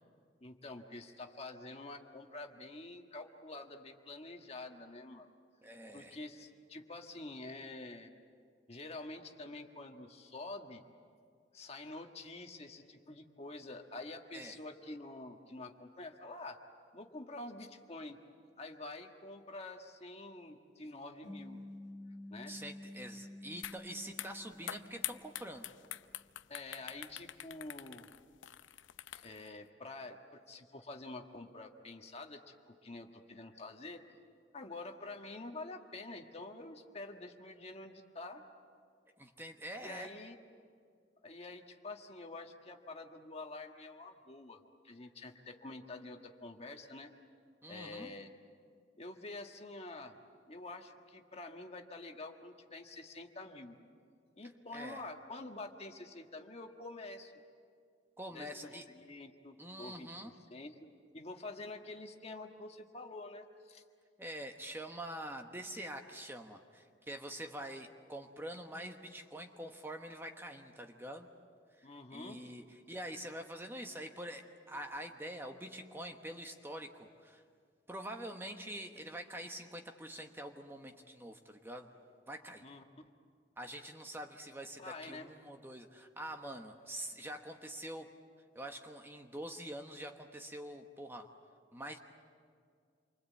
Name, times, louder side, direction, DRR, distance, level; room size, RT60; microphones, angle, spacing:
voice 1, 0.4-5.3 5.9-8.1 8.7-10.8 11.5-16.6 16.9-18.2 18.6-21.6 22.3-22.6 26.5-28.1 29.1-34.0 34.5-38.4 39.8-40.4 41.2-47.1 47.7-48.3 49.0-50.2 50.5-53.8 54.4-57.3 58.3-60.9 61.1-63.8 71.8-72.4 82.6-83.1 84.8-85.3, left 2 dB, 35° left, 4 dB, 1.6 m, -47 dB
voice 2, 5.6-6.2 14.3-14.6 22.5-25.7 39.2-40.1 47.6-48.1 54.7-55.0 58.2-58.8 59.6-60.3 64.2-71.3 71.8-77.4 77.9-81.9 82.3-82.6 83.6-88.1 88.5-91.3 91.7-92.0, right 1 dB, 10° right, 4 dB, 1.2 m, -45 dB
sound 1, 21.2-25.9, left 1 dB, 65° left, 2.3 m, -50 dB
sound 2, 23.6-23.8 24.1-29.5, left 12 dB, 85° left, 0.6 m, -44 dB
28.0 x 24.5 x 8.4 m, 2.2 s
head